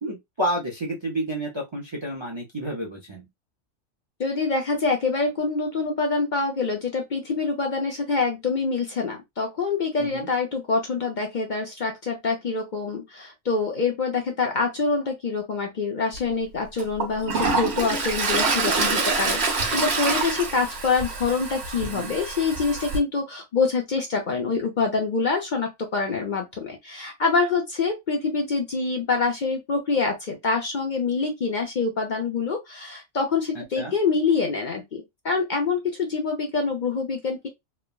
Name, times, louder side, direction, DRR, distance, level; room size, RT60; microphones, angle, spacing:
voice 1, 0.0-3.3 10.0-10.3 21.8-22.1 33.5-33.9, right 1 dB, 35° right, 0.5 m, -30 dB
voice 2, 4.2-37.5, left 4 dB, 50° left, 0.7 m, -26 dB
Toilet flush, 16.1-16.2 16.8-23.0, right 4 dB, 60° right, 1.1 m, -26 dB
3.2 x 2.1 x 2.3 m
omnidirectional pair, 1.2 m